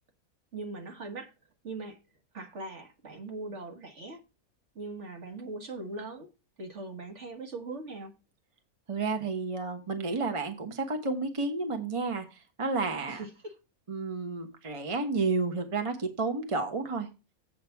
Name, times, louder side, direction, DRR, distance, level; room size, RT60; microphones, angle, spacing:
voice 1, 0.5-1.3 1.6-2.0 2.3-4.2 4.8-6.3 6.6-8.1 13.1-13.5, right 3 dB, 55° right, 1.8 m, -40 dB
voice 2, 8.9-13.3 13.9-17.1, right 3 dB, 25° right, 1.0 m, -31 dB
8.1 x 5.1 x 7.0 m
omnidirectional pair, 1.5 m